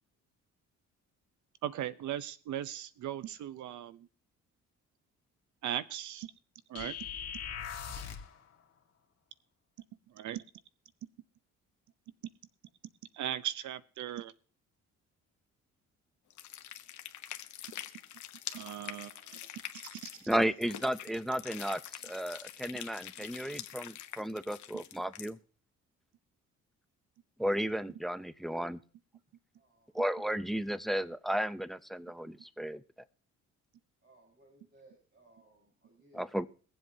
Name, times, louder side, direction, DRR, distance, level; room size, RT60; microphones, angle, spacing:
voice 1, 1.6-4.1 5.6-6.3 6.7-6.9 10.1-10.4 13.1-14.3 18.5-19.4 19.7-20.1, right 11 dB, 70° right, 16 dB, 0.7 m, -38 dB
sound 1, 6.8-8.4, left 8 dB, 55° left, 1.7 m, -40 dB
sound 2, 16.3-25.3, left 11 dB, 75° left, 1.0 m, -45 dB
voice 2, 20.3-25.4 27.4-28.8 29.9-32.8 36.1-36.5, equal, ahead, 14 dB, 0.5 m, -33 dB
voice 3, 29.6-29.9 34.0-36.3, right 1 dB, 35° right, -2 dB, 5.1 m, -63 dB
23.0 x 7.7 x 2.7 m, 0.41 s
cardioid pair, 90°, 30 cm